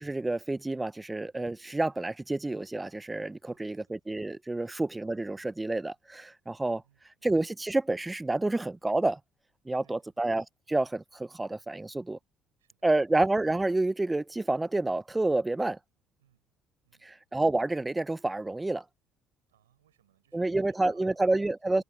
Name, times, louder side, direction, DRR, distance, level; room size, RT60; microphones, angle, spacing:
voice 1, 0.0-6.8 7.2-9.2 9.7-12.2 12.8-15.8 17.1-18.8 20.3-21.8, right 2 dB, 15° right, 0.3 m, -29 dB
voice 2, 3.4-4.0 4.6-4.7 6.8-7.3 9.8-10.3 12.6-13.1 16.2-16.5 16.8-17.2 19.5-21.8, right 12 dB, 90° right, 4.6 m, -68 dB
hypercardioid pair, 60°, 0 cm